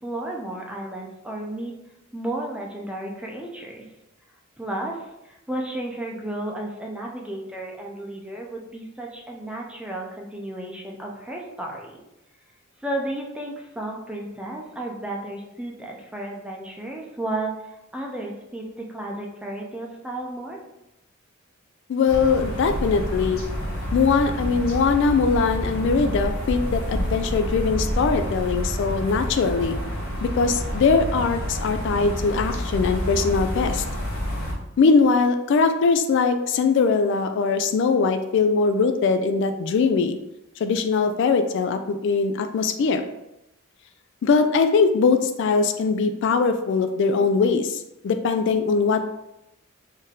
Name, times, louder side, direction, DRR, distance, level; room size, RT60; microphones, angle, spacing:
voice 1, 0.0-1.8 2.1-3.9 4.6-12.0 12.8-20.6, right 1 dB, 5° right, -1 dB, 0.6 m, -33 dB
voice 2, 21.9-23.4 23.9-29.7 30.2-33.8 34.8-40.2 40.6-43.0 44.2-49.1, left 4 dB, 60° left, 8 dB, 0.3 m, -21 dB
sound 1, 22.1-34.5, equal, 90° left, 1.2 m, -28 dB
3.8 x 2.7 x 3.6 m, 0.89 s
head